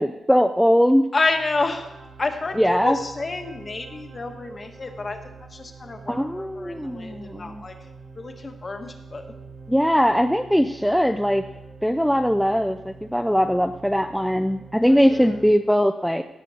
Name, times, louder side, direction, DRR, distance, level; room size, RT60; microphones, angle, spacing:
voice 1, 0.0-1.0 2.5-3.0 6.1-7.6 9.7-11.4 11.8-16.2, equal, ahead, 6 dB, 0.4 m, -20 dB
voice 2, 1.1-1.9 2.2-7.8 8.2-9.2 14.9-15.4, left 3 dB, 30° left, 5 dB, 1.2 m, -29 dB
sound 1, 1.2-15.5, right 4 dB, 70° right, 3.1 m, -44 dB
16.5 x 6.8 x 4.2 m, 0.93 s
wide cardioid pair, 135°, 0 cm